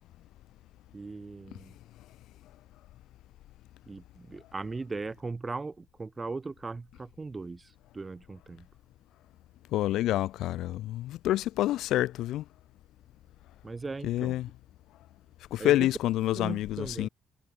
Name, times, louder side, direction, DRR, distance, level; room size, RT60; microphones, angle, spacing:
voice 1, 0.9-1.8 3.9-8.7 13.6-14.4 15.6-15.9 16.3-17.1, right 3 dB, 25° right, 2.1 m, -38 dB
voice 2, 9.7-12.4 14.0-14.5 15.5-17.1, left 14 dB, 85° left, 2.7 m, -28 dB
cardioid pair, 110°, 0 cm